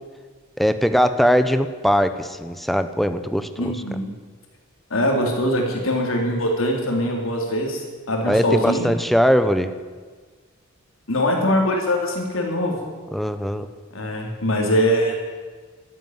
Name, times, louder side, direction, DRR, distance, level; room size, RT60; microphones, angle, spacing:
voice 1, 0.6-3.7 8.2-9.7 13.1-13.7, equal, ahead, 10 dB, 0.7 m, -20 dB
voice 2, 3.6-4.1 4.9-8.9 11.1-12.8 13.9-15.2, equal, 85° left, 1 dB, 3.4 m, -22 dB
12.5 x 11.0 x 9.4 m, 1.5 s
head